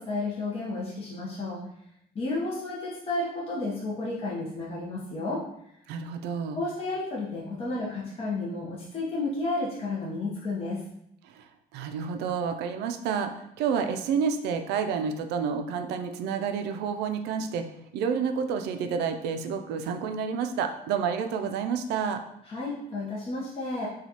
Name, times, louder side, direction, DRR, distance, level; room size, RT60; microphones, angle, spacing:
voice 1, 0.0-1.6 2.1-5.4 6.6-10.8 22.5-23.9, left 2 dB, 35° left, -6 dB, 0.8 m, -32 dB
voice 2, 5.9-6.6 11.2-22.2, right 6 dB, 80° right, 7 dB, 0.4 m, -29 dB
4.3 x 2.3 x 2.8 m, 0.76 s
cardioid pair, 110°, 17 cm